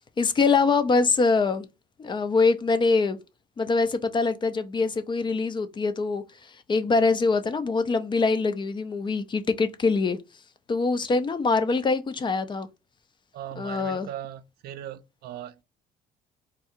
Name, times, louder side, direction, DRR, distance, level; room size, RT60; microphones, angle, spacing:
voice 1, 0.2-1.7 2.0-3.2 3.6-10.2 10.7-12.7 13.6-14.1, left 4 dB, 30° left, 0.5 m, -24 dB
voice 2, 13.3-15.6, right 11 dB, 70° right, 0.4 m, -39 dB
3.6 x 2.3 x 4.3 m
cardioid pair, 110°, 17 cm